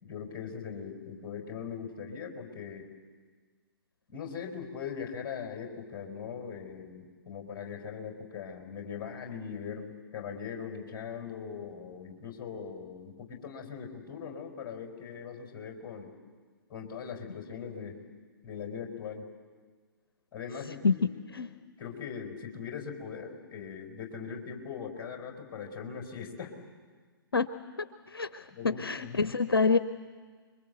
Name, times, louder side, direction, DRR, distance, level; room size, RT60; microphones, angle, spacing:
voice 1, 0.0-2.9 4.1-16.1 16.7-18.0 18.4-19.2 20.3-21.2 21.8-26.5 28.5-29.2, left 6 dB, 25° left, 2 dB, 4.7 m, -40 dB
voice 2, 20.8-21.5 27.3-27.5 28.1-29.8, left 4 dB, 75° left, 13 dB, 0.9 m, -27 dB
29.5 x 22.5 x 8.1 m, 1.6 s
figure-of-eight pair, 120°, 12 cm